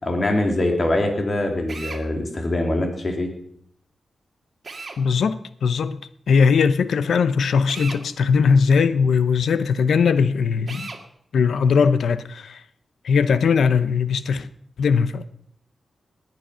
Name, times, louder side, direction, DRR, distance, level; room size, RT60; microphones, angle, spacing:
voice 1, 0.0-3.3, left 1 dB, 40° left, 2.8 m, -23 dB
Drill, 1.7-2.0 4.6-5.0 7.7-8.0 10.7-11.0, right 3 dB, 40° right, 2.1 m, -35 dB
voice 2, 5.0-6.0 6.3-10.9 11.3-12.6 13.0-14.5 14.8-15.2, left 5 dB, 85° left, 0.8 m, -19 dB
19.5 x 9.5 x 5.7 m
wide cardioid pair, 95°, 0 cm